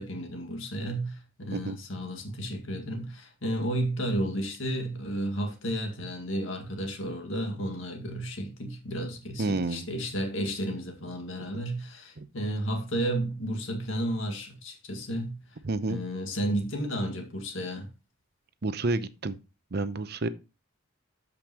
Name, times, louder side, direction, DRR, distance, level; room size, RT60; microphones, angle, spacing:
voice 1, 0.0-15.4 15.9-17.9, right 1 dB, 80° left, 2.0 m, -32 dB
voice 2, 9.4-9.9 12.2-12.3 15.6-16.0 18.6-19.4 19.7-20.3, right 2 dB, 55° right, 0.7 m, -29 dB
13.0 x 5.2 x 3.0 m
head